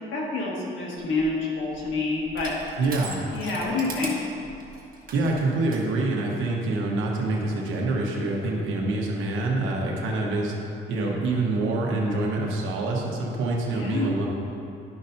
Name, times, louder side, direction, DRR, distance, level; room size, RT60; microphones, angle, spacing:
voice 1, 0.1-2.5 3.3-4.3 13.7-14.1, left 3 dB, 80° left, -4 dB, 1.7 m, -28 dB
Crushing, 1.0-5.9, right 3 dB, 45° right, 1.4 m, -41 dB
voice 2, 2.8-3.2 5.1-10.5 10.9-14.3, right 2 dB, 90° right, -2 dB, 1.2 m, -26 dB
11.5 x 5.6 x 2.7 m, 2.8 s
cardioid pair, 90°, 20 cm